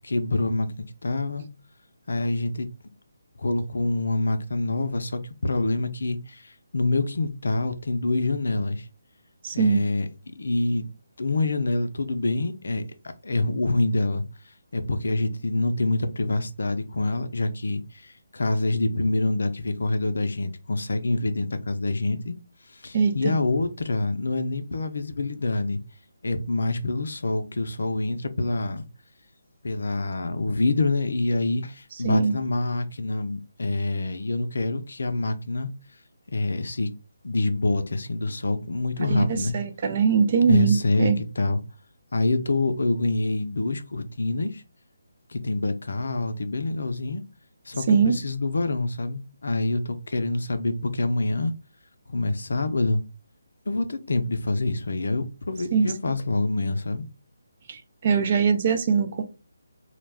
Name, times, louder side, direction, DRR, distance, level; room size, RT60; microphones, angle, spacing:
voice 1, 0.0-1.4 2.1-2.7 3.4-8.9 9.5-10.1 10.4-10.9 11.2-12.8 13.2-14.2 14.7-22.3 22.7-25.8 26.2-28.9 29.6-35.7 36.3-36.9 37.2-39.5 40.5-41.6 42.1-44.6 45.3-47.2 47.7-51.5 52.1-53.0 53.7-57.1, left 2 dB, 75° left, 0.4 m, -26 dB
voice 2, 9.4-9.8 22.9-23.3 32.0-32.3 39.0-41.2 47.9-48.2 55.7-55.9 57.7-59.2, right 6 dB, 40° right, 0.4 m, -22 dB
2.3 x 2.1 x 3.3 m
figure-of-eight pair, 155°, 0 cm